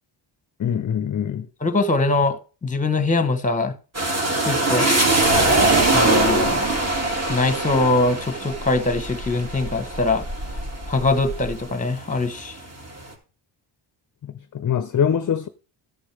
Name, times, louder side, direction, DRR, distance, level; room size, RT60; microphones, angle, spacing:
voice 1, 0.6-1.5 14.2-15.5, left 8 dB, 40° left, 0.6 m, -23 dB
voice 2, 1.6-3.8 4.5-4.9 5.9-6.6 7.3-10.2 10.9-12.6, left 3 dB, 15° left, 1.1 m, -22 dB
sound 1, 3.9-11.6 12.1-12.9, right 2 dB, 30° right, 2.2 m, -22 dB
sound 2, 7.9-11.7, equal, 85° right, 5.8 m, -36 dB
13.5 x 6.3 x 3.3 m
cardioid pair, 100°, 50 cm